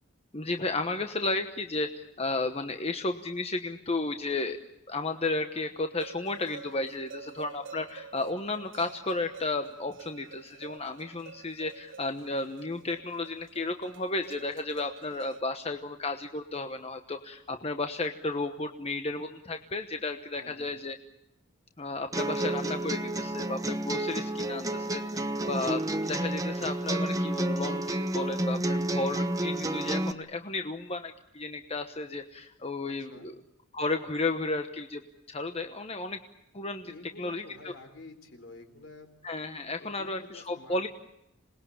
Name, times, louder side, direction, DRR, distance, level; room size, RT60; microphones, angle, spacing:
voice 1, 0.3-4.6 4.9-21.0 21.8-33.4 33.7-35.0 35.3-36.2 36.5-36.9 37.2-37.7 39.2-40.9, left 2 dB, 30° left, 6 dB, 1.1 m, -33 dB
sound 1, 6.0-15.4, right 5 dB, 75° right, 1.4 m, -48 dB
voice 2, 20.3-20.7 24.2-24.9 32.9-33.3 36.8-39.1 39.8-40.9, left 2 dB, 70° left, 7 dB, 4.0 m, -49 dB
sound 2, 22.1-30.1, right 1 dB, 20° right, 1.0 m, -30 dB
27.0 x 20.0 x 8.7 m, 0.83 s
head